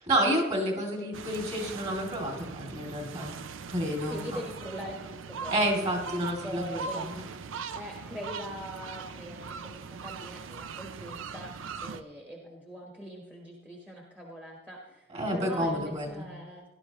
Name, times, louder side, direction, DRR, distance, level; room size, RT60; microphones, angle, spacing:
voice 1, 0.1-3.4 3.7-4.4 5.5-7.1 15.1-16.2, equal, 35° right, 1 dB, 2.4 m, -29 dB
voice 2, 0.8-1.1 4.1-7.1 7.7-11.5 11.8-16.7, equal, 5° right, -1 dB, 1.2 m, -42 dB
sound 1, 1.1-12.0, right 5 dB, 75° right, 0.5 m, -41 dB
17.5 x 11.5 x 3.0 m, 1.1 s
head